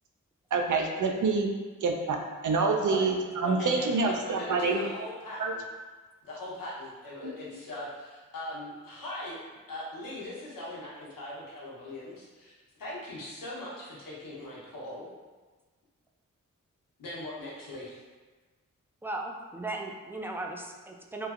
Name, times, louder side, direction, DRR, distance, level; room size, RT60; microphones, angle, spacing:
voice 1, 0.5-1.5 1.8-4.8 5.4-5.5 7.2-7.3, right 4 dB, 65° right, 2 dB, 0.5 m, -27 dB
voice 2, 3.4-5.6 6.2-9.4 9.7-12.5 12.8-15.1 17.0-18.0, left 1 dB, 85° left, -6 dB, 0.8 m, -40 dB
voice 3, 19.0-21.3, right 2 dB, 5° right, 1 dB, 0.3 m, -37 dB
3.1 x 2.1 x 2.3 m, 1.3 s
cardioid pair, 45°, 33 cm